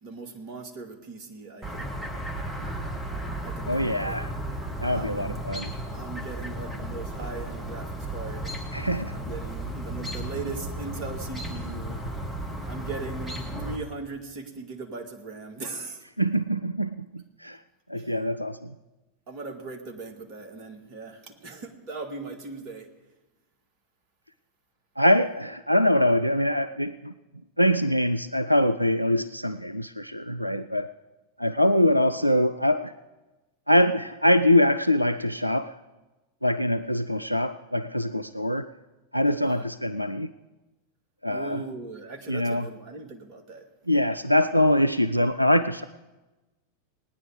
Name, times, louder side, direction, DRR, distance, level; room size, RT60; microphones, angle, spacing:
voice 1, 0.0-2.0 3.4-4.2 4.9-5.4 5.9-8.5 9.1-12.0 12.7-16.0 17.9-18.1 19.3-22.9 39.4-39.7 41.3-43.7, right 3 dB, 40° right, 4 dB, 1.9 m, -39 dB
Chirp tweet, 1.6-13.8, right 1 dB, 5° right, 2.0 m, -34 dB
voice 2, 3.7-4.3 4.8-5.7 8.7-9.2 16.2-17.6 17.9-18.8 25.0-27.1 27.6-30.9 31.4-32.9 33.7-35.8 36.4-38.7 39.1-40.3 41.2-41.6 42.3-42.7 43.9-45.8, left 1 dB, 90° right, 11 dB, 0.4 m, -23 dB
18.5 x 9.7 x 5.0 m, 1.1 s
figure-of-eight pair, 90°, 0 cm